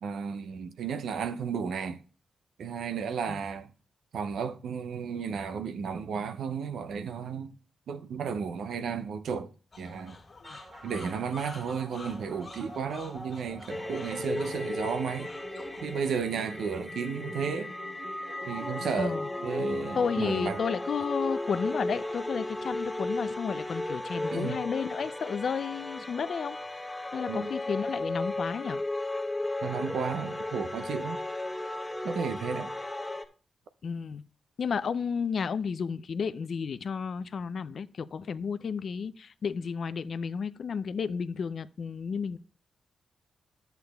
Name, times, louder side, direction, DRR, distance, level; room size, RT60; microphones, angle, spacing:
voice 1, 0.0-2.0 2.6-3.7 4.1-7.5 7.9-9.5 9.8-10.2 10.8-15.3 15.8-17.7 18.5-19.2 19.4-20.6 24.3-24.6 27.3-27.5 29.6-31.2 32.0-32.7, right 6 dB, 80° right, 0.5 m, -33 dB
sound 1, 9.7-16.1, left 3 dB, 45° left, 1.7 m, -48 dB
sound 2, 10.4-23.0, right 3 dB, 55° right, 2.0 m, -48 dB
sound 3, 13.7-33.2, left 2 dB, 10° left, 0.8 m, -35 dB
voice 2, 19.0-19.3 20.0-26.9 27.1-28.8 33.8-34.2 34.6-42.4, left 6 dB, 65° left, 0.4 m, -32 dB
11.5 x 8.0 x 2.3 m
cardioid pair, 60°, 0 cm